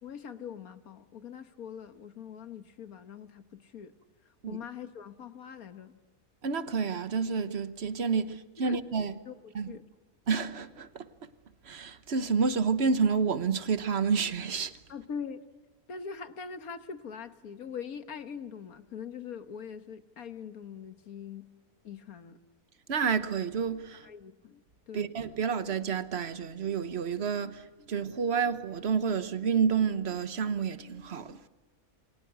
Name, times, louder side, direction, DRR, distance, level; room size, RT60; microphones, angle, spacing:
voice 1, 0.0-3.9 4.5-6.0 8.6-8.8 9.2-9.9 14.9-15.4 15.9-21.5 21.8-22.4 24.0-24.6 24.9-25.2, left 7 dB, 90° left, 1.8 m, -42 dB
voice 2, 6.4-9.2 9.5-9.7 10.3-11.1 11.7-14.7 22.9-24.0 24.9-31.4, right 6 dB, 50° right, 1.3 m, -29 dB
28.0 x 23.5 x 8.0 m
omnidirectional pair, 1.5 m